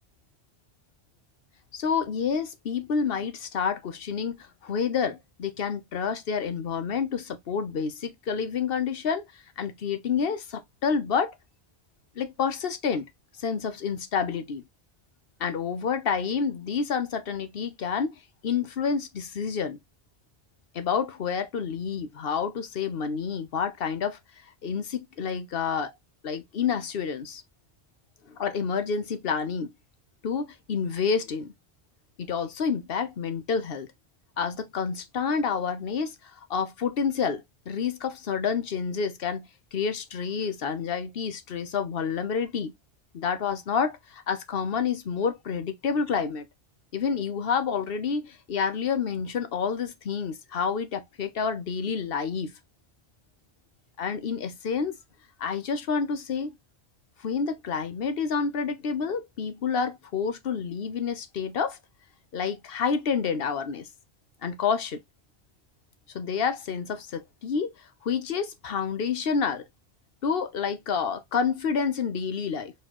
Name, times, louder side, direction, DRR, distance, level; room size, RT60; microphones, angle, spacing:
voice 1, 1.7-11.4 12.2-13.1 13.4-14.6 15.4-18.1 18.4-19.8 20.7-24.2 24.6-25.9 26.2-27.4 28.3-29.7 30.2-31.5 32.2-33.9 34.4-42.7 43.1-46.5 46.9-52.5 54.0-55.0 55.4-56.5 57.2-61.8 62.3-63.9 64.4-65.0 66.1-67.7 68.0-69.6 70.2-72.7, left 6 dB, 60° left, 1.0 m, -29 dB
4.6 x 3.8 x 3.0 m
omnidirectional pair, 1.1 m